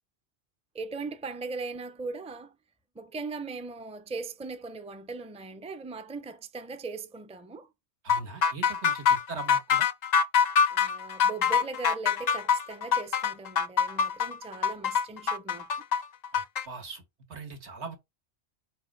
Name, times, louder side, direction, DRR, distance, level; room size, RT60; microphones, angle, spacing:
voice 1, 0.7-2.6 2.9-7.7 10.7-15.7, right 4 dB, 10° right, 0.4 m, -39 dB
voice 2, 8.0-9.9 16.3-17.0 17.3-18.0, right 4 dB, 85° right, 1.7 m, -41 dB
sound 1, 8.1-16.7, left 7 dB, 55° left, 0.5 m, -24 dB
4.6 x 4.3 x 5.2 m
omnidirectional pair, 1.1 m